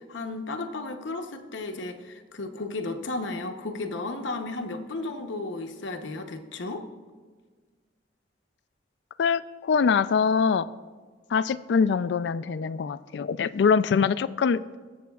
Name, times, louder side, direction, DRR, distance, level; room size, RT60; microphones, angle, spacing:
voice 1, 0.0-6.9, left 2 dB, 85° left, 5 dB, 0.8 m, -34 dB
voice 2, 9.2-10.7 11.3-14.6, left 6 dB, 65° left, 16 dB, 0.3 m, -23 dB
21.5 x 7.4 x 2.3 m, 1.5 s
head